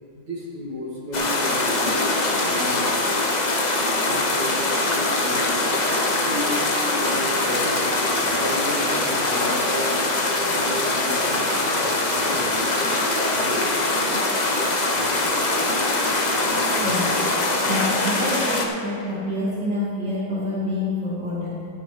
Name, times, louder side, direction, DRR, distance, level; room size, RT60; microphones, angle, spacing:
voice 1, 0.1-2.8 4.0-5.4 6.1-9.9 10.2-12.9 13.3-13.8 15.0-15.1 15.8-15.9 16.5-16.8, equal, 80° right, -6 dB, 3.0 m, -34 dB
sound 1, 1.1-18.7, left 2 dB, 65° left, 0.4 m, -22 dB
voice 2, 16.8-17.2 17.6-21.7, left 1 dB, 60° right, -9 dB, 2.7 m, -27 dB
12.5 x 12.0 x 3.2 m, 2.4 s
omnidirectional pair, 2.1 m